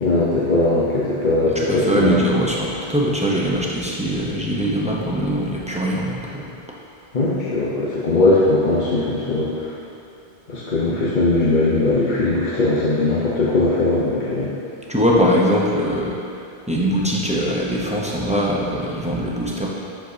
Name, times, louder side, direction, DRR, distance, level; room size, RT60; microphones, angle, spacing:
voice 1, 0.0-2.2 7.1-9.7 10.5-14.5, left 2 dB, 50° left, -7 dB, 0.9 m, -19 dB
voice 2, 1.5-6.8 14.9-19.7, equal, 10° right, -4 dB, 0.6 m, -22 dB
7.6 x 6.2 x 2.7 m, 2.5 s
omnidirectional pair, 1.1 m